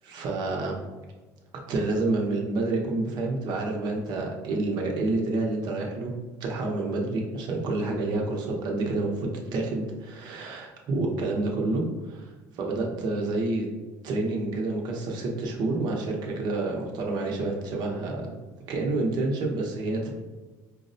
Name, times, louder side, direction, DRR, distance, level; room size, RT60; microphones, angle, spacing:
voice 1, 0.1-0.8 1.7-6.1 6.4-13.7 14.0-18.3 18.7-20.1, right 2 dB, 60° right, 1 dB, 0.7 m, -28 dB
4.6 x 2.1 x 2.6 m, 1.3 s
cardioid pair, 110°, 8 cm